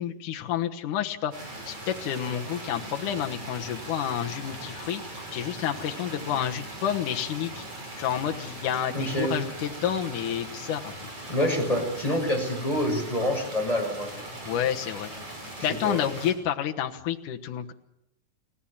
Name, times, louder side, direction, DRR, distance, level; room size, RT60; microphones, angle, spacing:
voice 1, 0.0-5.0 5.3-7.7 8.0-10.9 14.5-15.1 15.5-17.7, left 10 dB, 75° left, 3 dB, 2.8 m, -29 dB
sound 1, 1.3-16.3, right 1 dB, 45° right, 7.5 m, -40 dB
voice 2, 8.9-9.3 11.3-14.1 15.6-16.0, equal, 10° left, 2 dB, 6.7 m, -27 dB
29.0 x 16.0 x 7.4 m, 0.84 s
omnidirectional pair, 3.6 m